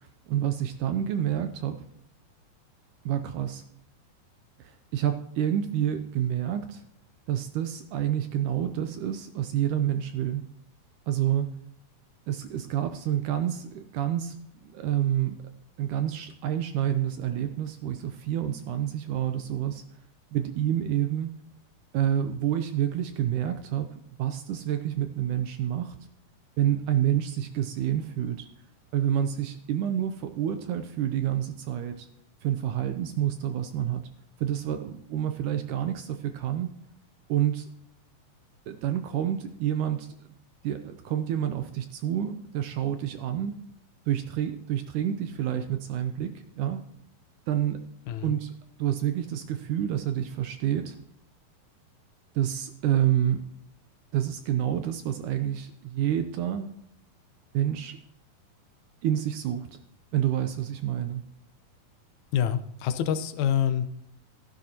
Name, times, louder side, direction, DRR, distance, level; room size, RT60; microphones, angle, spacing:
voice 1, 0.3-1.8 3.1-3.7 4.6-6.8 7.3-10.4 11.1-11.5 12.3-15.4 15.8-19.8 20.3-21.3 21.9-26.0 26.6-28.5 28.9-32.1 32.4-34.0 34.4-36.7 37.3-37.7 38.7-40.1 40.6-43.6 44.1-46.8 47.5-47.8 48.2-48.5 48.8-51.0 52.4-53.5 54.1-56.7 57.5-58.0 59.0-59.8 60.1-61.2, right 10 dB, 75° right, 8 dB, 1.9 m, -28 dB
voice 2, 62.3-63.9, left 9 dB, 75° left, 10 dB, 1.8 m, -26 dB
14.5 x 10.5 x 2.9 m, 0.74 s
omnidirectional pair, 4.2 m